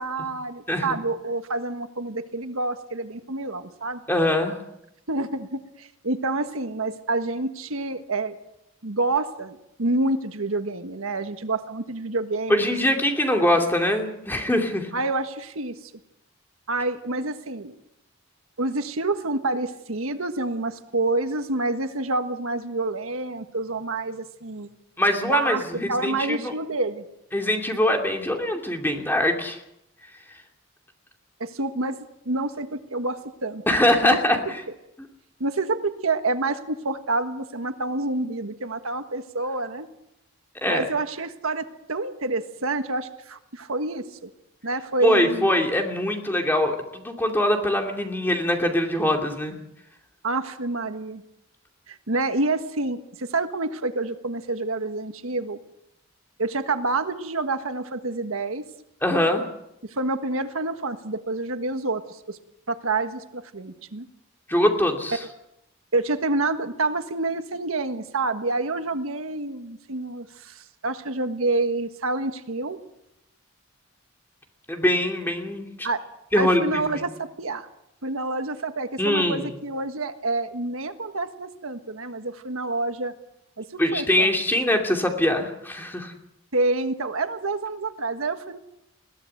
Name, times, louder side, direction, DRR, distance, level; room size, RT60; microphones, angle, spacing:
voice 1, 0.0-4.0 5.1-8.3 8.8-12.7 14.9-15.9 16.7-17.7 18.6-24.7 25.2-25.6 25.9-27.0 31.4-32.0 32.2-33.6 34.0-34.4 35.4-39.9 40.6-44.3 44.6-45.5 50.2-51.2 51.9-55.6 56.4-58.6 59.9-62.4 62.7-64.1 65.9-72.8 75.8-76.0 76.3-77.7 78.0-83.1 83.6-84.3 86.5-88.6, right 2 dB, 80° right, 8 dB, 1.5 m, -28 dB
voice 2, 4.1-4.6 12.5-14.9 25.0-26.5 27.3-29.6 33.7-34.6 40.6-40.8 45.0-49.6 59.0-59.5 64.5-65.3 74.7-75.9 76.3-77.1 79.0-79.5 83.8-86.1, left 1 dB, 10° left, 2 dB, 2.6 m, -23 dB
21.5 x 16.5 x 7.9 m, 0.84 s
head